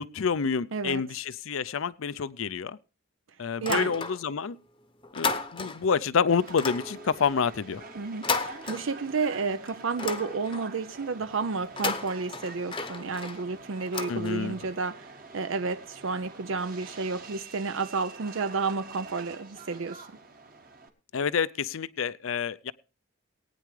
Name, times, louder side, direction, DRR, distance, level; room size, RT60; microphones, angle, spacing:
voice 1, 0.0-2.8 3.4-4.6 5.1-7.8 14.1-14.6 21.1-22.7, left 6 dB, 75° left, 0.5 m, -28 dB
voice 2, 0.7-1.0 3.6-3.9 7.9-20.0, right 4 dB, 65° right, 0.5 m, -31 dB
sound 1, 3.5-4.5 4.8-6.0 6.5-9.3 9.7-10.8 11.6-14.7, left 4 dB, 25° left, 0.8 m, -34 dB
Subway metro underground, 6.3-20.9, right 3 dB, 40° right, 1.6 m, -47 dB
19.5 x 9.4 x 3.2 m
head